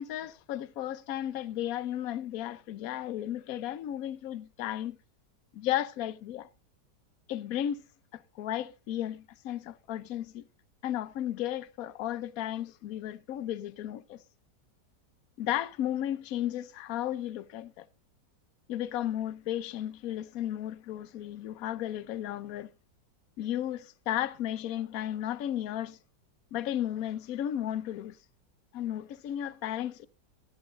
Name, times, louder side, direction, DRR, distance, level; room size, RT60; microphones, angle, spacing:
voice 1, 0.0-5.0 5.5-6.5 7.3-7.8 8.1-10.4 10.8-14.2 15.4-17.9 18.7-22.7 23.4-26.0 26.5-28.2 28.7-30.1, left 12 dB, 60° left, 1.1 m, -34 dB
15.5 x 9.7 x 3.9 m
omnidirectional pair, 1.9 m